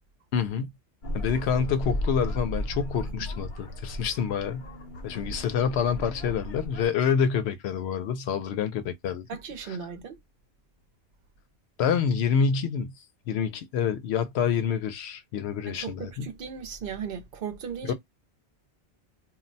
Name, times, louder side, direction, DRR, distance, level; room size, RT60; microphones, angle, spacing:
voice 1, 0.3-0.7 1.1-4.6 5.0-9.3 11.8-12.9 13.3-16.3 17.9-18.0, left 7 dB, 90° left, 0.8 m, -27 dB
sound 1, 1.0-6.9, equal, 55° left, 0.8 m, -35 dB
voice 2, 9.3-10.2 15.7-17.9, right 7 dB, 60° right, 0.8 m, -37 dB
2.3 x 2.1 x 3.8 m
omnidirectional pair, 1.1 m